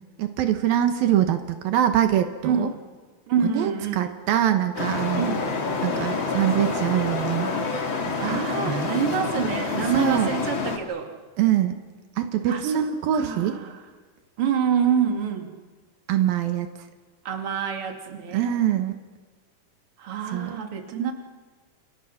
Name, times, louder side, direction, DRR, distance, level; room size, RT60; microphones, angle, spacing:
voice 1, 0.2-2.7 3.5-5.3 5.8-7.5 8.3-8.9 9.9-10.3 11.4-11.8 12.2-13.6 16.1-16.7 18.3-18.9 20.3-20.5, right 10 dB, 85° right, 7 dB, 3.1 m, -23 dB
voice 2, 2.4-2.7 3.3-4.1 5.2-5.5 8.2-11.1 12.4-12.9 13.1-13.8 14.4-15.5 17.2-18.6 20.0-21.1, right 7 dB, 40° right, 3 dB, 3.0 m, -26 dB
Traffic noise roadway noise, 4.8-10.8, left 4 dB, 40° left, 2.7 m, -27 dB
28.5 x 28.5 x 5.9 m, 1.5 s
omnidirectional pair, 4.1 m